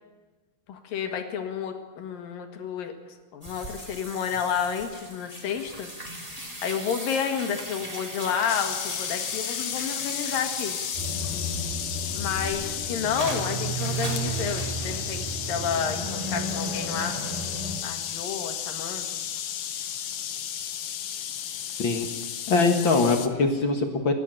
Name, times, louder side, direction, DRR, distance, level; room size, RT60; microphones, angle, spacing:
voice 1, 0.7-10.8 12.1-17.2 17.8-19.2, left 7 dB, 75° left, 5 dB, 3.4 m, -31 dB
sound 1, 3.4-11.6 12.0-15.0, equal, 10° right, 3.8 m, -39 dB
sound 2, 8.5-23.3, left 9 dB, 90° left, 1.2 m, -33 dB
sound 3, 11.0-17.8, right 2 dB, 70° right, 6.1 m, -33 dB
voice 2, 21.7-22.1 22.5-24.1, left 3 dB, 50° left, 4 dB, 1.6 m, -22 dB
29.5 x 10.5 x 9.1 m, 1.3 s
omnidirectional pair, 4.1 m